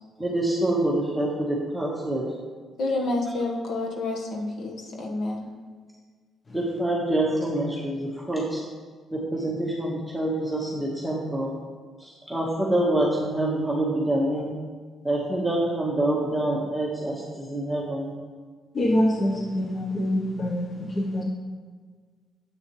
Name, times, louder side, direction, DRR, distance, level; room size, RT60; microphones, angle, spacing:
voice 1, 0.2-2.3 6.5-8.6 9.1-11.5 12.0-14.5 15.0-18.1, right 1 dB, ahead, -4 dB, 1.6 m, -26 dB
voice 2, 2.8-5.4, left 2 dB, 65° left, 0 dB, 1.6 m, -29 dB
voice 3, 18.7-21.2, left 1 dB, 35° left, -1 dB, 1.1 m, -25 dB
9.4 x 8.1 x 3.3 m, 1.5 s
cardioid pair, 90°, 0 cm